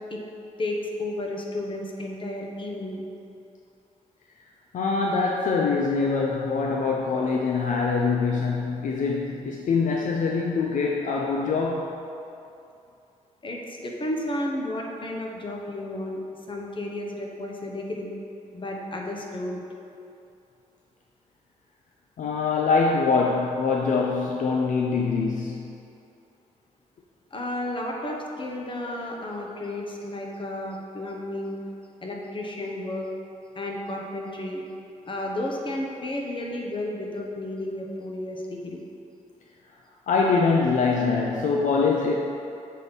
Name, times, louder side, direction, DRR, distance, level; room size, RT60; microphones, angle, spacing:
voice 1, 0.6-3.0 13.4-16.2 16.5-18.1 18.5-19.6 27.3-31.6 32.0-33.1 33.5-34.6 35.0-38.8, left 1 dB, 40° left, 0 dB, 1.0 m, -32 dB
voice 2, 4.7-11.9 22.2-25.6 40.1-42.1, left 4 dB, 65° left, -1 dB, 0.5 m, -24 dB
7.4 x 3.6 x 4.0 m, 2.6 s
cardioid pair, 70°, 14 cm